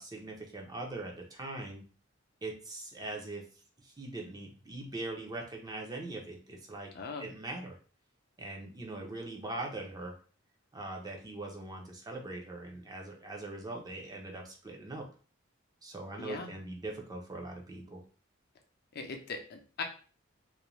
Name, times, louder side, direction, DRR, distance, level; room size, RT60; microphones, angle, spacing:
voice 1, 0.0-1.8 2.4-6.9 7.2-7.8 8.4-10.2 10.7-15.1 15.8-18.0, right 2 dB, 20° right, 1 dB, 0.5 m, -41 dB
voice 2, 6.9-7.3 16.2-16.6 18.9-19.8, left 4 dB, 50° left, 4 dB, 0.5 m, -40 dB
2.5 x 2.1 x 2.9 m, 0.39 s
head